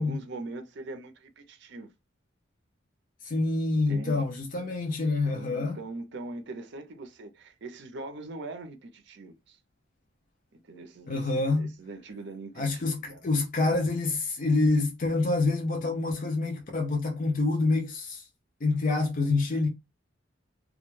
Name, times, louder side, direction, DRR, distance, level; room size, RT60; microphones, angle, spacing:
voice 1, 0.0-1.9 3.9-4.2 5.2-9.6 10.5-13.3, right 2 dB, 60° right, 0.6 m, -42 dB
voice 2, 3.2-5.8 11.1-11.7 12.6-18.3 18.6-19.7, left 3 dB, 45° left, 0.5 m, -27 dB
2.3 x 2.1 x 3.0 m
head